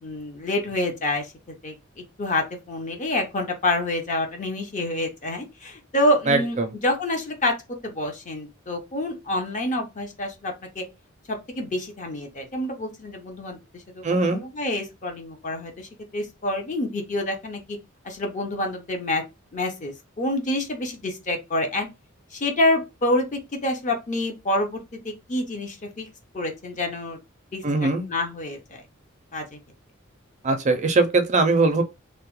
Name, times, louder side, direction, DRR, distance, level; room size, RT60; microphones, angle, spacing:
voice 1, 0.0-6.5 6.8-7.5 7.8-10.8 11.3-13.6 13.9-14.0 14.3-17.8 18.0-19.2 19.5-21.9 22.3-26.1 26.3-27.2 27.5-27.6 28.1-28.8 29.3-29.4, left 1 dB, 40° left, 0.6 m, -27 dB
voice 2, 6.3-6.7 14.0-14.4 27.6-28.1 30.4-31.8, right 3 dB, 35° right, 0.4 m, -21 dB
2.8 x 2.1 x 2.9 m
head